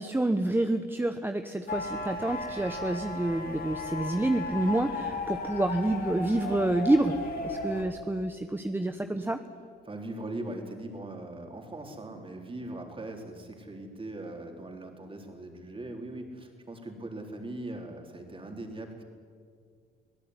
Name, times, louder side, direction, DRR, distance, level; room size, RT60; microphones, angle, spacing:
voice 1, 0.0-7.1 7.4-9.4, right 1 dB, 10° right, 8 dB, 1.1 m, -28 dB
sound 1, 1.7-7.8, left 3 dB, 50° left, 3.9 m, -36 dB
voice 2, 9.8-19.0, right 2 dB, 25° right, 3 dB, 4.3 m, -40 dB
25.5 x 17.0 x 9.9 m, 2.1 s
cardioid pair, 90°, 20 cm